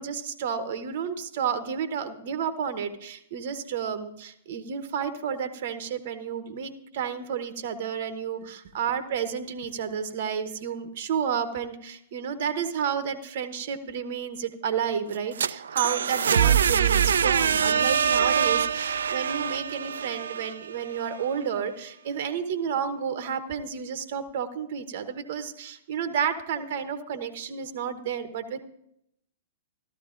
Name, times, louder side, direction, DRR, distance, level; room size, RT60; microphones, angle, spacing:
voice 1, 0.0-28.6, right 7 dB, 55° right, 10 dB, 0.9 m, -31 dB
sound 1, 15.1-21.0, right 8 dB, 70° right, 0.3 m, -24 dB
14.0 x 13.0 x 2.5 m, 0.74 s
figure-of-eight pair, 110°, 0 cm